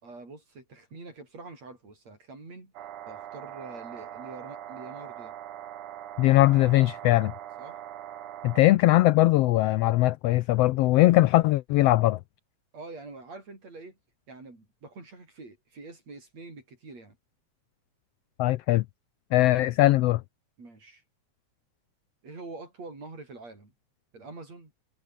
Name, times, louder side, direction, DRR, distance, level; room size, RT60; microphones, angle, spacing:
voice 1, 0.0-2.7 3.1-5.3 7.6-7.8 12.7-14.0 14.3-17.2 20.6-21.0 22.2-23.7 24.1-24.7, right 3 dB, 60° right, 8.5 m, -45 dB
sound 1, 2.7-8.6, right 11 dB, 80° right, 2.9 m, -42 dB
voice 2, 6.2-7.3 8.4-12.2 18.4-18.8 19.3-20.2, left 17 dB, 85° left, 1.4 m, -20 dB
omnidirectional pair, 3.4 m